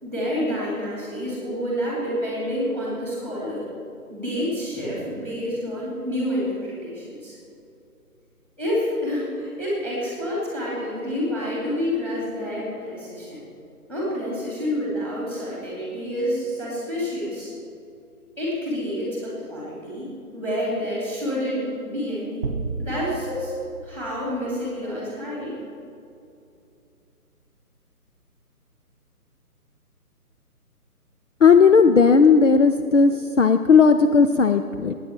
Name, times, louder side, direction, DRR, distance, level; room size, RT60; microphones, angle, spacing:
voice 1, 0.0-3.7 4.1-7.3 8.6-13.4 13.9-17.5 18.4-20.1 20.3-22.5 22.8-23.5 23.8-25.6, equal, 5° left, -6 dB, 2.5 m, -28 dB
sound 1, 22.4-25.0, right 3 dB, 35° right, 0.8 m, -33 dB
voice 2, 31.4-34.9, left 5 dB, 55° left, 8 dB, 0.5 m, -15 dB
18.5 x 9.0 x 4.4 m, 2.6 s
figure-of-eight pair, 150°, 46 cm